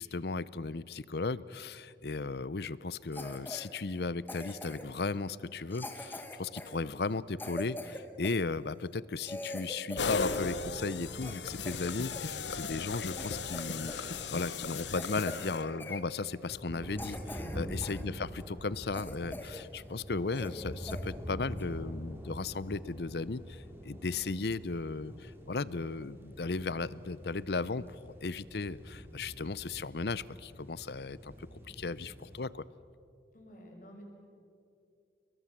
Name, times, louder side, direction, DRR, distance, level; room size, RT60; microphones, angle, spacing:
voice 1, 0.0-32.6, left 3 dB, 65° left, 19 dB, 0.7 m, -36 dB
Cough, 3.1-3.7 4.3-5.0 5.7-8.4 8.9-9.0 9.2-10.6 10.9-12.3 12.8-12.9 13.1-14.1 14.3-14.5 14.9-15.5 15.8-16.0 16.5-16.6 17.0-18.0 18.4-18.5 18.9-19.6 19.9-20.0 20.3-20.6 20.9-21.0 21.6-21.8, left 1 dB, 10° left, 1.6 m, -43 dB
sound 1, 10.0-16.0, left 4 dB, 80° left, 1.1 m, -37 dB
sound 2, 15.6-32.4, equal, 15° right, 2.9 m, -45 dB
voice 2, 33.3-34.0, equal, 45° left, 1 dB, 6.0 m, -51 dB
29.5 x 21.5 x 7.4 m, 2.6 s
head